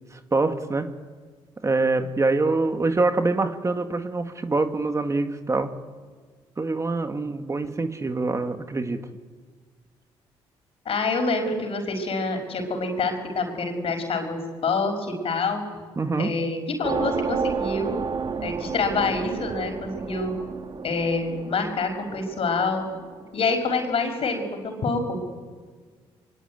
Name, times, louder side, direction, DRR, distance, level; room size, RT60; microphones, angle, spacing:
voice 1, 0.1-0.9 1.6-5.7 6.6-9.1 16.0-16.3, right 3 dB, 25° right, 7 dB, 1.9 m, -25 dB
voice 2, 10.9-15.6 16.2-18.0 18.4-20.3 20.8-22.8 23.3-25.2, left 3 dB, 60° left, 6 dB, 5.7 m, -26 dB
sound 1, 16.8-23.6, right 5 dB, 45° right, 2.1 m, -32 dB
23.5 x 23.0 x 9.5 m, 1.5 s
supercardioid pair, 70°, 11 cm